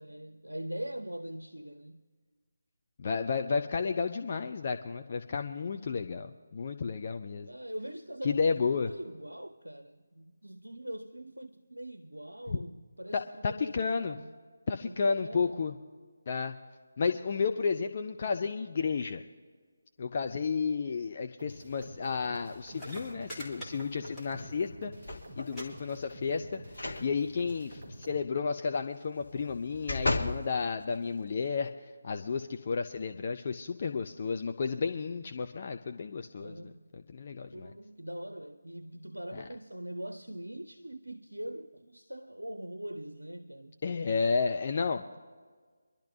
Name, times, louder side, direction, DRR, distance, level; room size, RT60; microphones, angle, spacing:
voice 1, 0.0-2.0 7.4-14.4 14.8-15.8 36.4-36.8 37.5-43.8, right 1 dB, 85° right, 0.6 m, -42 dB
voice 2, 3.0-7.5 8.2-8.9 12.5-12.6 13.1-14.2 14.7-15.7 16.3-16.6 17.0-19.2 20.0-24.9 25.4-26.6 27.0-31.7 32.0-36.7 37.1-37.7 39.3-39.4 43.8-45.1, left 5 dB, 35° left, 0.5 m, -32 dB
sound 1, 21.4-28.2, right 1 dB, 25° right, 4.7 m, -48 dB
sound 2, 22.4-22.5 22.7-24.6 24.9-25.2 25.5-25.6 25.9-26.4 27.3-27.4, equal, 5° left, 2.4 m, -44 dB
sound 3, 25.0-25.6 26.7-27.1 27.5-27.6 29.2-30.4 31.0-31.1, left 2 dB, 65° left, 1.4 m, -34 dB
25.0 x 11.5 x 2.7 m
figure-of-eight pair, 155°, 0 cm